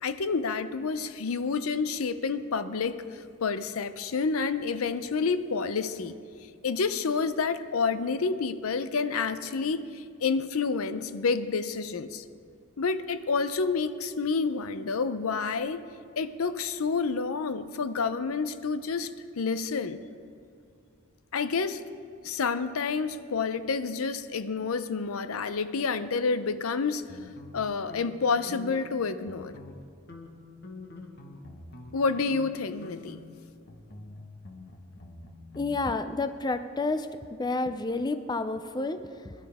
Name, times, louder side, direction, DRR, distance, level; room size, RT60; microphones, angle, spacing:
voice 1, 0.0-6.1 6.6-12.2 12.8-15.8 16.2-19.1 19.4-20.0 21.3-21.8 22.2-27.0 27.5-29.5 31.9-33.2, left 4 dB, 80° left, 12 dB, 0.6 m, -29 dB
sound 1, 27.1-29.0 29.2-29.8 30.1-32.0 32.3-32.5 32.8-35.8, left 2 dB, 50° left, 1.3 m, -46 dB
voice 2, 35.6-37.1 37.4-39.3, left 3 dB, 20° left, 10 dB, 0.4 m, -30 dB
22.0 x 11.5 x 3.6 m, 2.3 s
head